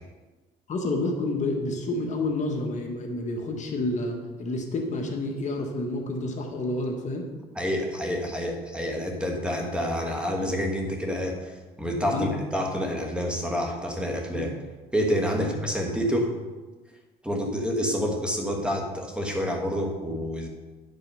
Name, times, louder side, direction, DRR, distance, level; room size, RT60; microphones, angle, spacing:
voice 1, 0.7-7.3 12.1-12.3 14.3-14.5 15.4-15.5, left 2 dB, 45° left, 2 dB, 1.4 m, -29 dB
voice 2, 7.5-11.5 11.8-14.5 14.9-16.3 17.2-20.5, equal, 5° right, 1 dB, 1.5 m, -28 dB
10.5 x 5.5 x 5.5 m, 1.3 s
cardioid pair, 110°, 17 cm